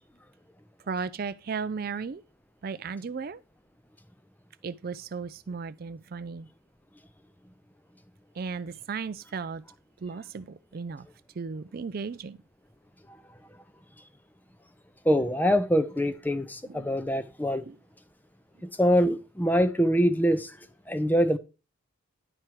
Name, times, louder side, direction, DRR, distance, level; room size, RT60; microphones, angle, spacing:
voice 1, 0.9-2.2 2.6-3.4 4.6-6.5 8.3-9.6 10.0-11.1 11.4-12.4 16.7-16.9 17.6-17.8, right 5 dB, 45° right, 0.4 m, -35 dB
voice 2, 15.1-17.6 18.6-20.5 20.9-21.4, equal, 10° left, 0.5 m, -24 dB
11.0 x 4.5 x 4.7 m
head